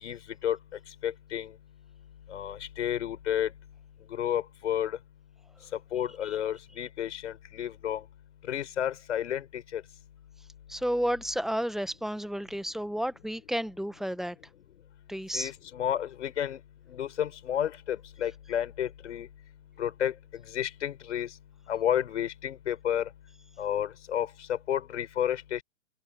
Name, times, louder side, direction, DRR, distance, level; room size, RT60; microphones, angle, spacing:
voice 1, 0.0-0.6 1.0-1.5 2.3-3.5 4.1-5.0 5.9-8.0 8.5-9.8 15.3-16.6 16.9-19.3 19.8-20.1 20.5-21.3 21.7-23.1 23.6-25.6, left 10 dB, 65° left, 4.9 m, -31 dB
voice 2, 10.7-14.3 15.1-15.5, equal, ahead, 1.2 m, -31 dB
hypercardioid pair, 130°, 38 cm